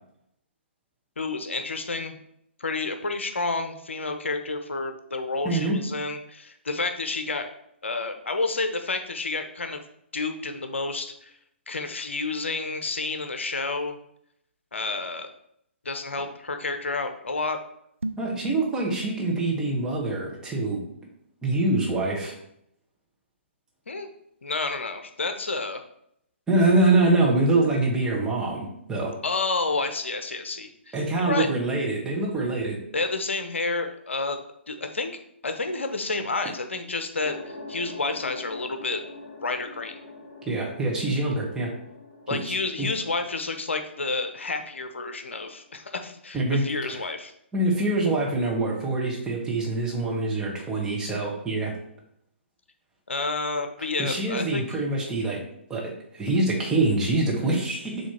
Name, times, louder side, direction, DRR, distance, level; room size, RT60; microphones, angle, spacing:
voice 1, 1.2-2.1 2.6-7.5 7.8-9.8 10.1-11.3 11.7-14.0 14.7-15.3 15.8-17.6 23.9-24.1 24.4-25.8 29.2-31.5 32.9-34.4 34.7-37.4 37.7-39.0 39.4-40.0 42.3-47.3 53.1-54.8, left 3 dB, 70° left, 7 dB, 0.8 m, -30 dB
voice 2, 5.4-5.8 18.2-20.8 21.4-22.3 26.5-29.1 30.9-32.8 40.5-41.7 42.3-42.9 46.3-47.0 47.5-51.7 54.0-55.4 55.7-58.1, right 2 dB, 10° right, -3 dB, 1.4 m, -25 dB
sound 1, 17.9-18.4, right 2 dB, 80° right, 0.6 m, -34 dB
sound 2, 37.2-45.9, left 2 dB, 50° left, 1.6 m, -45 dB
7.4 x 3.2 x 4.4 m, 0.73 s
figure-of-eight pair, 130°, 7 cm